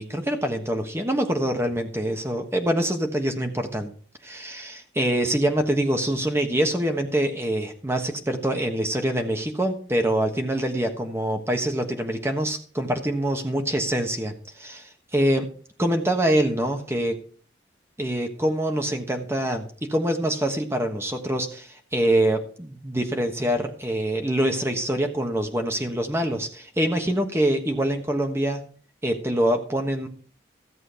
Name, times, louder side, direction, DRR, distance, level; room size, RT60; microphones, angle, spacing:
voice 1, 0.0-3.9 4.2-15.5 15.8-17.2 18.0-28.6 29.0-30.1, right 1 dB, 15° right, 5 dB, 1.3 m, -25 dB
14.0 x 7.5 x 5.0 m, 0.43 s
head